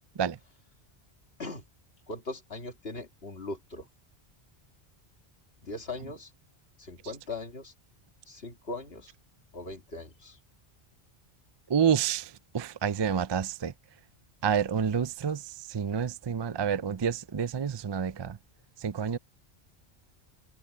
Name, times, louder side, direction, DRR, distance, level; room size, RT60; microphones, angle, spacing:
voice 1, 2.1-3.9 5.6-6.3 6.8-7.7 8.3-9.1 9.5-10.4, left 2 dB, 70° left, 2.5 m, -39 dB
voice 2, 11.7-13.7 14.4-18.4 18.8-19.2, right 7 dB, 35° right, 0.4 m, -29 dB
omnidirectional pair, 1.1 m